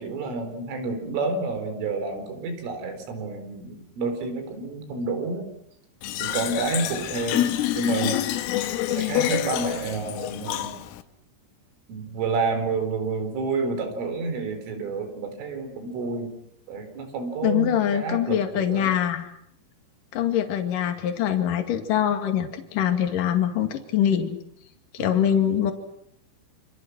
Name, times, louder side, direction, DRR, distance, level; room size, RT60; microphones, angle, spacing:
voice 1, 0.0-5.4 6.2-8.2 8.9-10.7 11.9-16.3 16.7-18.9 25.0-25.5, right 3 dB, 85° right, 7 dB, 7.0 m, -29 dB
Fill (with liquid), 6.0-11.0, left 14 dB, 90° left, 3.8 m, -27 dB
voice 2, 8.9-9.3 17.4-19.3 20.1-24.4 24.9-25.7, left 10 dB, 50° left, 5 dB, 3.3 m, -24 dB
28.0 x 27.5 x 6.2 m, 0.74 s
omnidirectional pair, 5.6 m